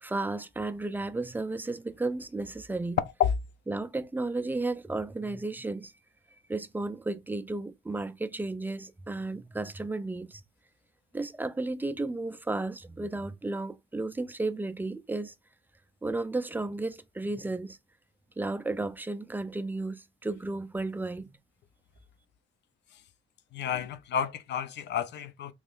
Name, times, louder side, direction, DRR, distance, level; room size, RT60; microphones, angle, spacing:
voice 1, 0.0-3.0 3.7-5.9 6.5-10.4 11.1-15.3 16.0-17.8 18.4-21.3, right 2 dB, 10° right, 0.4 m, -33 dB
voice 2, 23.5-25.5, left 9 dB, 60° left, 0.5 m, -30 dB
3.5 x 3.1 x 2.4 m
cardioid pair, 90°, 20 cm